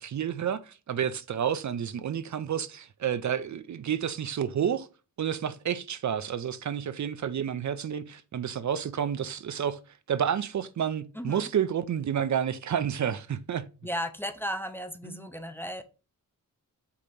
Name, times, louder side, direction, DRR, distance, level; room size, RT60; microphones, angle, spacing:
voice 1, 0.0-4.9 5.2-9.8 10.1-13.6 15.0-15.3, right 8 dB, 55° right, 0.6 m, -30 dB
voice 2, 11.2-11.5 13.8-15.8, equal, 5° left, 0.6 m, -35 dB
8.4 x 2.9 x 5.3 m
wide cardioid pair, 145°, 34 cm